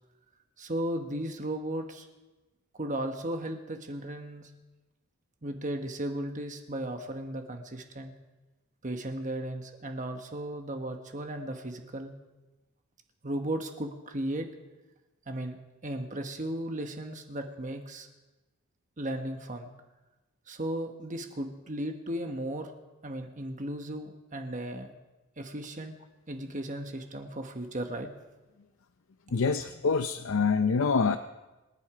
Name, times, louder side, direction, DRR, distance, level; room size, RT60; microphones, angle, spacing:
voice 1, 0.6-2.1 2.7-4.5 5.4-8.1 8.8-12.1 13.2-14.5 15.3-15.6 15.8-18.1 19.0-19.7 20.5-22.7 23.0-24.9 25.4-25.9 26.3-28.1, right 1 dB, 35° right, 5 dB, 1.2 m, -35 dB
voice 2, 29.3-31.2, left 5 dB, 65° left, 9 dB, 0.5 m, -26 dB
26.5 x 10.5 x 4.9 m, 1.1 s
head